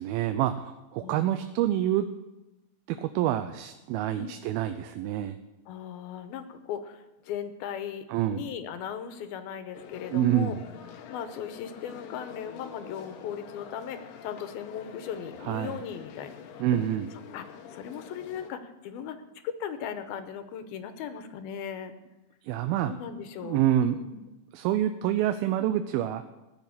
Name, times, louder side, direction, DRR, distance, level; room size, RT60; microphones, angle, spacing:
voice 1, 0.0-2.1 2.9-5.4 8.1-8.5 10.1-10.6 15.5-15.8 16.6-17.1 22.4-22.9 23.4-24.0 24.5-26.2, right 11 dB, 85° right, 9 dB, 2.5 m, -27 dB
voice 2, 1.0-1.4 4.2-4.4 5.7-10.6 11.1-16.8 17.3-19.2 19.4-21.9 22.8-24.2, left 8 dB, 90° left, 10 dB, 2.9 m, -38 dB
sound 1, 9.7-18.5, left 8 dB, 70° left, 2.5 m, -46 dB
16.0 x 7.0 x 9.9 m, 1.0 s
omnidirectional pair, 4.2 m